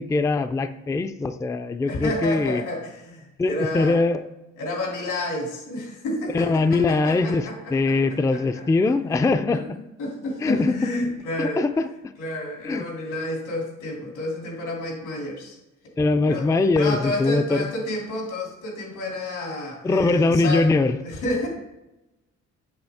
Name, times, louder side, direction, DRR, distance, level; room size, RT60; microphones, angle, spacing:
voice 1, 0.0-2.6 3.4-4.2 6.3-9.6 10.4-10.7 11.4-12.1 12.6-12.8 16.0-17.7 19.8-21.0, left 3 dB, 10° left, 10 dB, 0.4 m, -22 dB
voice 2, 1.9-4.0 4.6-8.6 9.5-9.6 10.0-11.6 12.2-15.6 16.3-16.5 16.7-20.6 21.0-21.5, left 1 dB, 85° left, -1 dB, 2.9 m, -30 dB
7.9 x 6.7 x 3.5 m, 0.95 s
cardioid pair, 90°, 30 cm